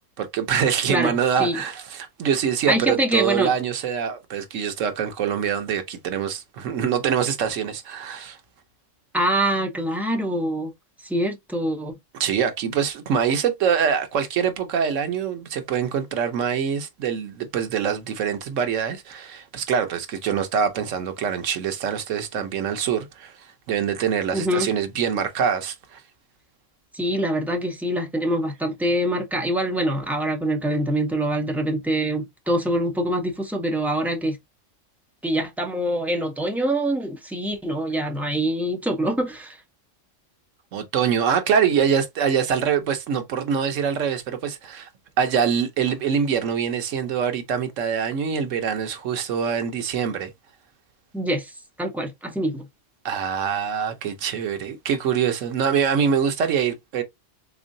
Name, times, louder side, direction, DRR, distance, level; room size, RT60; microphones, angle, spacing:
voice 1, 0.2-8.4 12.2-23.3 23.7-26.0 40.7-44.9 45.2-50.3 53.0-57.0, right 7 dB, 85° right, 1.1 m, -24 dB
voice 2, 0.9-1.6 2.7-3.5 9.1-10.7 11.0-11.9 24.3-24.7 26.9-34.4 35.2-39.6 51.1-51.5 51.8-52.7, right 1 dB, ahead, 0.5 m, -24 dB
3.6 x 3.0 x 2.6 m
omnidirectional pair, 1.3 m